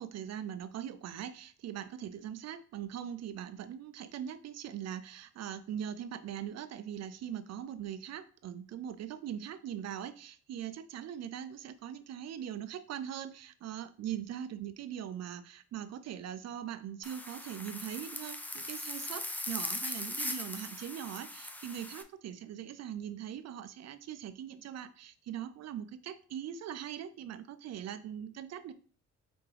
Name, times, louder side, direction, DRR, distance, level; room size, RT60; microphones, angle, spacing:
voice 1, 0.0-28.7, right 10 dB, 60° right, 12 dB, 0.5 m, -41 dB
sound 1, 17.0-22.0, left 1 dB, 5° left, 0.4 m, -40 dB
4.3 x 3.4 x 3.3 m, 0.41 s
cardioid pair, 90°, 30 cm